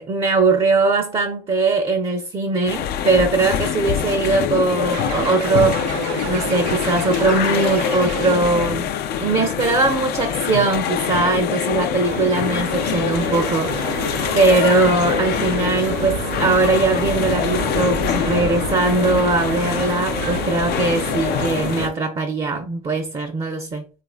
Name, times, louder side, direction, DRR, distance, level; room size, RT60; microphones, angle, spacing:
voice 1, 0.0-5.9 6.3-8.9 9.2-14.1 14.3-23.9, right 3 dB, 25° right, 0.6 m, -20 dB
sound 1, 2.7-21.9, left 9 dB, 50° left, 0.4 m, -24 dB
sound 2, 4.9-8.7, right 7 dB, 85° right, 0.5 m, -30 dB
sound 3, 12.0-21.9, right 4 dB, 55° right, 0.8 m, -29 dB
3.1 x 2.4 x 2.4 m
hypercardioid pair, 70°, 21 cm